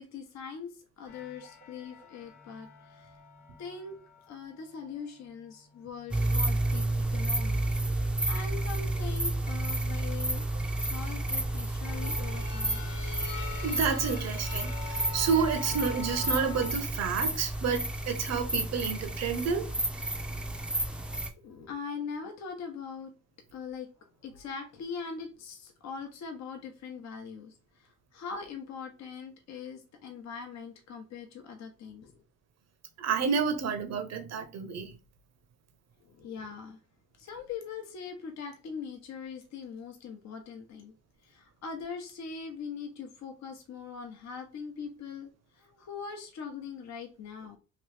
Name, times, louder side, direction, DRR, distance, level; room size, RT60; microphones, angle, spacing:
voice 1, 0.0-3.2 3.6-4.0 4.3-10.5 10.8-12.9 21.4-23.1 23.5-23.9 24.2-32.2 36.0-36.8 37.2-40.9 41.2-47.6, left 5 dB, 60° left, 0.7 m, -42 dB
sound 1, 1.1-6.6 7.2-8.1 9.3-10.0 11.0-16.7, left 5 dB, 90° left, 1.0 m, -46 dB
sound 2, 6.1-21.3, right 1 dB, 5° right, 0.5 m, -31 dB
voice 2, 13.6-19.7 33.0-34.9, right 6 dB, 60° right, 0.8 m, -30 dB
3.0 x 2.7 x 3.2 m
cardioid pair, 90°, 30 cm